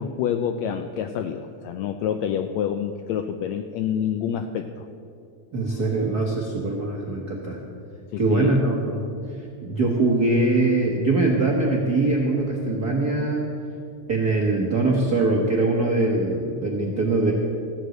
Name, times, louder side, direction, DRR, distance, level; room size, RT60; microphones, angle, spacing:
voice 1, 0.0-4.8 8.1-8.6, left 8 dB, 85° left, 8 dB, 1.6 m, -27 dB
voice 2, 5.5-7.6 8.2-9.1 9.6-13.5 14.1-17.3, right 2 dB, 65° right, -1 dB, 0.9 m, -22 dB
15.0 x 7.9 x 7.8 m, 2.4 s
omnidirectional pair, 3.6 m